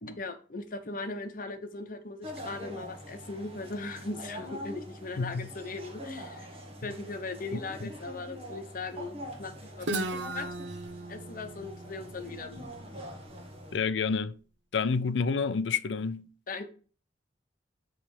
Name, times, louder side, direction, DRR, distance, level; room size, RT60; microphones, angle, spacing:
voice 1, 0.0-6.5 6.8-9.9 10.3-10.5 11.1-12.6 16.5-16.7, left 3 dB, 50° left, 0.9 m, -39 dB
sound 1, 2.2-13.8, equal, 35° right, 1.4 m, -44 dB
voice 2, 5.2-5.5 6.8-6.9 7.5-7.9 13.7-14.4 14.7-16.3, left 5 dB, 75° left, 0.5 m, -29 dB
Guitar, 9.8-13.6, right 2 dB, 75° right, 0.8 m, -37 dB
8.9 x 3.3 x 4.8 m
head